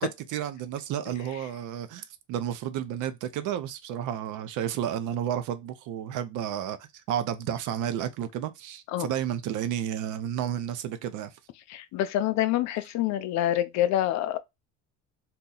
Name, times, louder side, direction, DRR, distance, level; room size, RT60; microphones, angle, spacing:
voice 1, 0.3-11.3, right 10 dB, 65° right, 0.6 m, -32 dB
voice 2, 11.7-14.4, left 12 dB, 55° left, 0.4 m, -26 dB
2.8 x 2.2 x 3.7 m
cardioid pair, 130°, 34 cm